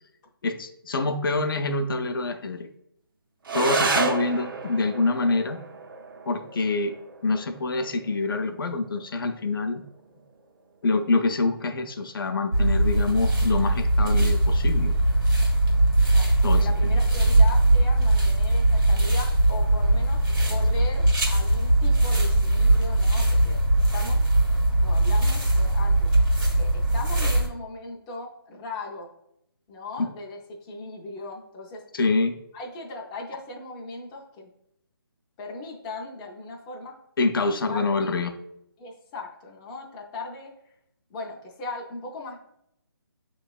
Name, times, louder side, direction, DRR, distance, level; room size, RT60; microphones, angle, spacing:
voice 1, 0.4-2.7 3.5-5.6 6.3-7.0 7.2-9.8 10.8-14.9 16.4-17.0 30.0-30.1 31.9-32.4 37.2-38.3, left 3 dB, 65° left, 6 dB, 0.5 m, -26 dB
sound 1, 3.4-12.4, right 3 dB, 60° right, 0.5 m, -32 dB
voice 2, 3.6-4.5 16.1-23.6 23.9-24.2 24.8-26.1 26.6-29.1 29.7-31.8 32.5-34.5 35.4-36.9 37.4-38.2 38.8-40.5 41.1-42.4, left 2 dB, 15° left, -3 dB, 0.4 m, -38 dB
sound 2, 12.5-27.5, right 1 dB, 90° right, 1.6 m, -20 dB
6.7 x 3.0 x 2.2 m, 0.77 s
figure-of-eight pair, 155°, 13 cm